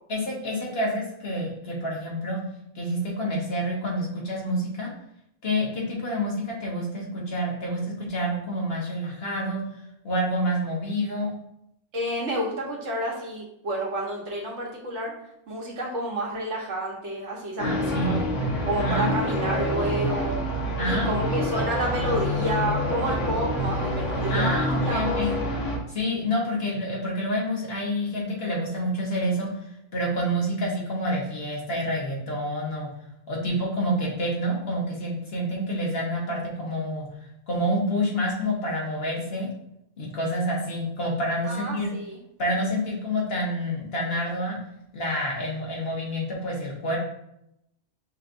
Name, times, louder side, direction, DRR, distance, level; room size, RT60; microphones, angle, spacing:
voice 1, 0.1-2.4 2.7-4.9 5.4-9.6 10.0-11.3 17.6-18.2 18.8-19.6 20.8-21.1 24.3-25.3 25.9-29.5 29.9-32.9 33.3-37.1 37.5-39.5 40.0-41.9 42.4-44.6 44.9-47.0, equal, 55° left, -3 dB, 1.5 m, -28 dB
voice 2, 11.9-15.1 15.5-18.2 18.7-20.4 20.8-25.2 41.5-42.2, right 1 dB, 75° right, -2 dB, 1.5 m, -30 dB
sound 1, 17.6-25.8, equal, 90° left, 1.4 m, -27 dB
6.3 x 3.2 x 2.6 m, 0.79 s
omnidirectional pair, 1.2 m